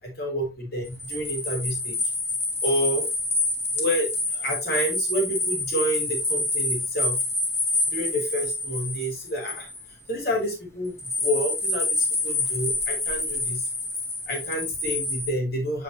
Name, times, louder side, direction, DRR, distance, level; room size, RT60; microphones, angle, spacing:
voice 1, 0.0-2.0 2.6-3.1 3.7-7.2 7.9-9.7 10.1-13.7 14.3-15.8, equal, 45° left, 0 dB, 3.9 m, -29 dB
sound 1, 0.8-10.1 11.0-15.3, left 2 dB, 10° left, 1.5 m, -27 dB
8.4 x 5.8 x 3.1 m, 0.24 s
head